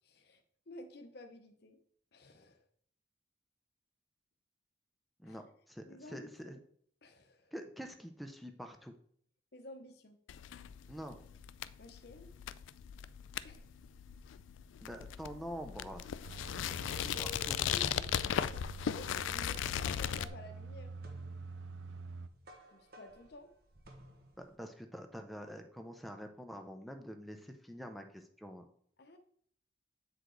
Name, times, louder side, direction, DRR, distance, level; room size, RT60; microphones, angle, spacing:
voice 1, 0.0-1.8 2.1-2.6 5.2-5.4 5.9-6.6 7.0-7.5 9.5-10.2 11.8-12.3 13.4-13.7 16.4-20.9 22.7-23.5 29.0-29.2, left 1 dB, 55° left, 6 dB, 0.8 m, -52 dB
voice 2, 5.2-6.6 7.5-8.9 10.9-11.2 14.8-16.0 16.7-17.6 24.4-28.7, equal, ahead, 5 dB, 0.5 m, -46 dB
sound 1, 10.3-20.3, left 9 dB, 90° left, 0.3 m, -37 dB
sound 2, 16.2-22.3, right 4 dB, 80° right, 0.5 m, -48 dB
sound 3, 19.5-24.5, right 1 dB, 55° right, 1.1 m, -58 dB
8.0 x 4.9 x 3.8 m, 0.63 s
head